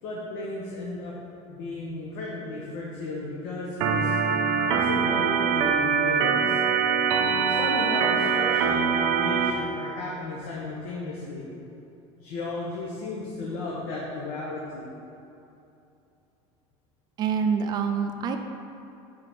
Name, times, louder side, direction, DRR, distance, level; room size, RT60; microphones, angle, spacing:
voice 1, 0.0-1.2 1.5-4.2 4.7-6.6 7.4-11.4 12.2-14.9, left 2 dB, 85° left, -5 dB, 1.1 m, -34 dB
Organ, 3.8-9.5, right 6 dB, 75° right, 0.6 m, -23 dB
voice 2, 17.2-18.4, right 6 dB, 30° right, 6 dB, 0.4 m, -26 dB
5.0 x 4.7 x 6.1 m, 2.8 s
cardioid pair, 170°, 13 cm